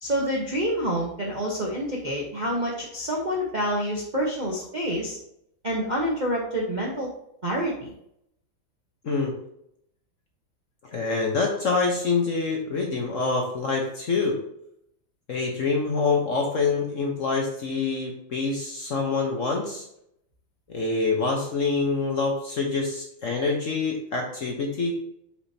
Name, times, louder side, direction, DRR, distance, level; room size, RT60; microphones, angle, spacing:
voice 1, 0.0-5.2 5.6-7.1 7.4-7.9, equal, 35° right, -2 dB, 0.7 m, -27 dB
voice 2, 10.8-14.4 15.3-19.9 20.7-24.9, left 4 dB, 50° left, 1 dB, 1.1 m, -26 dB
8.5 x 5.0 x 2.8 m, 0.76 s
omnidirectional pair, 2.2 m